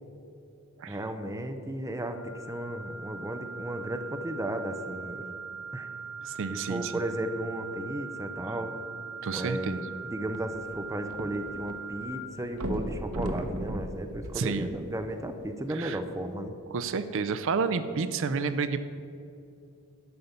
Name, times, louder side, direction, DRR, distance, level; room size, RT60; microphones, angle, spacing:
voice 1, 0.9-5.3 5.7-5.9 6.5-8.7 9.3-16.6, right 1 dB, 15° right, 6 dB, 0.6 m, -34 dB
sound 1, 2.1-12.0, right 5 dB, 30° left, 1.9 m, -41 dB
voice 2, 6.2-6.9 9.2-9.8 14.3-14.7 15.7-16.0 16.7-18.8, right 5 dB, 60° right, 11 dB, 0.5 m, -30 dB
sound 2, 10.3-11.8 12.0-12.1 12.5-15.1 15.8-15.9, right 1 dB, 85° right, 1.0 m, -35 dB
11.0 x 5.3 x 8.0 m, 2.6 s
head